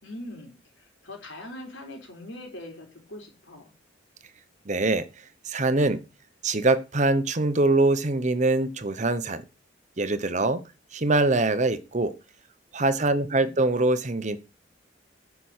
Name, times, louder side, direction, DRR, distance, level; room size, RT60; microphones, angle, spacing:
voice 1, 0.0-3.8, left 1 dB, 85° left, 4.0 m, -42 dB
voice 2, 4.7-5.1 5.5-6.0 6.4-9.4 10.0-10.6 10.9-12.1 12.7-14.4, right 2 dB, 40° right, 0.9 m, -23 dB
9.9 x 5.8 x 6.5 m
head